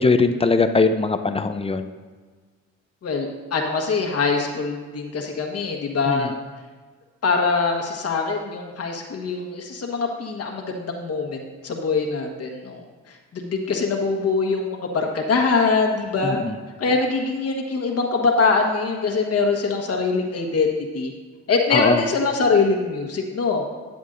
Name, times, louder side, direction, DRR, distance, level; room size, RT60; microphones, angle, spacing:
voice 1, 0.0-1.8 6.1-6.3 16.2-16.5 21.7-22.0, left 4 dB, 20° left, 8 dB, 0.6 m, -20 dB
voice 2, 3.0-6.3 7.2-16.4 16.8-21.1 21.5-23.6, left 4 dB, 55° left, 2 dB, 1.4 m, -23 dB
12.5 x 9.4 x 2.6 m, 1.4 s
cardioid pair, 90°, 30 cm